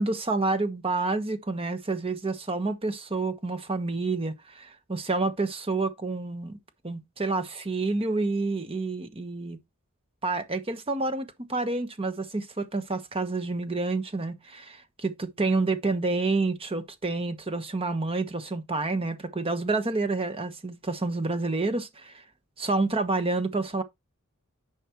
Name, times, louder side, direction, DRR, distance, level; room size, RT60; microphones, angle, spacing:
voice 1, 0.0-6.6 6.8-9.6 10.2-22.2 22.6-23.8, right 3 dB, 25° right, 1.1 m, -29 dB
10.5 x 5.1 x 3.0 m
head